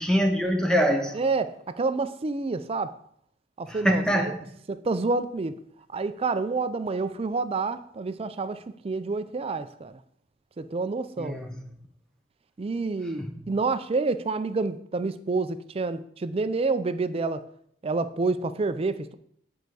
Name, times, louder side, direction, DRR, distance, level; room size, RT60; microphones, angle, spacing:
voice 1, 0.0-1.2 3.7-4.5 11.2-11.6 13.2-13.4, equal, 5° left, 0.7 m, -25 dB
voice 2, 1.1-2.9 3.6-4.3 4.7-5.5 5.9-9.9 10.6-11.4 12.6-17.4 17.8-19.1, right 3 dB, 30° right, 0.4 m, -28 dB
9.2 x 4.7 x 4.7 m
head